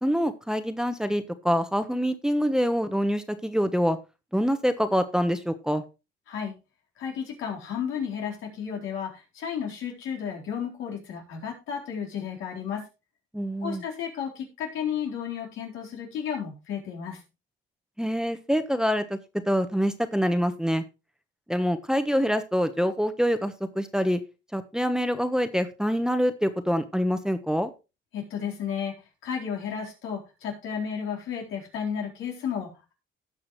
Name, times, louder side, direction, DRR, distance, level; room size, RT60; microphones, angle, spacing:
voice 1, 0.0-4.0 4.3-5.8 13.3-13.8 18.0-19.2 19.5-20.8 21.5-24.2 24.5-27.7, equal, 5° right, 9 dB, 1.1 m, -25 dB
voice 2, 7.0-12.8 13.6-17.2 28.1-28.9 29.2-32.9, left 7 dB, 85° left, -1 dB, 4.2 m, -33 dB
17.5 x 6.1 x 3.2 m, 0.28 s
cardioid pair, 90°, 20 cm